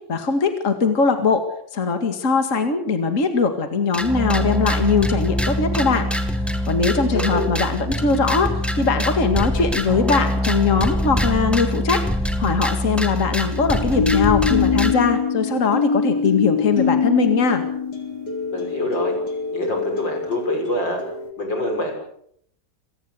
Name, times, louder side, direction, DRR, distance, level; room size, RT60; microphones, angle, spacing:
voice 1, 0.1-1.4 1.7-6.1 6.7-8.5 8.8-12.0 12.4-17.6, left 4 dB, 45° left, 7 dB, 2.4 m, -21 dB
sound 1, 3.9-14.9, left 1 dB, ahead, 2.2 m, -24 dB
voice 2, 6.9-7.5 18.5-19.2 19.5-21.0 21.4-22.0, left 1 dB, 90° left, 4 dB, 7.1 m, -25 dB
sound 2, 10.1-11.0 13.5-21.3, left 6 dB, 65° left, 3.7 m, -24 dB
28.0 x 18.5 x 6.8 m, 0.67 s
omnidirectional pair, 1.9 m